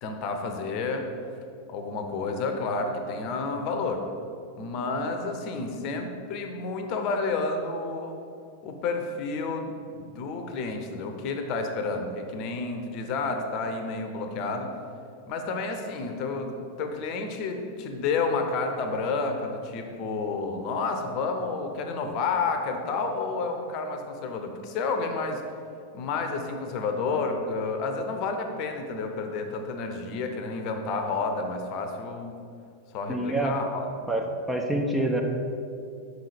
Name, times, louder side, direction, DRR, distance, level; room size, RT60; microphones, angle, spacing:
voice 1, 0.0-1.1 1.7-4.0 4.5-8.2 8.6-14.7 15.3-25.4 25.9-32.4 32.9-33.9, left 4 dB, 40° left, 5 dB, 0.8 m, -30 dB
voice 2, 33.1-33.5 34.1-35.2, right 1 dB, 5° right, 1 dB, 0.7 m, -26 dB
6.2 x 5.6 x 5.0 m, 2.4 s
figure-of-eight pair, 90°, 0 cm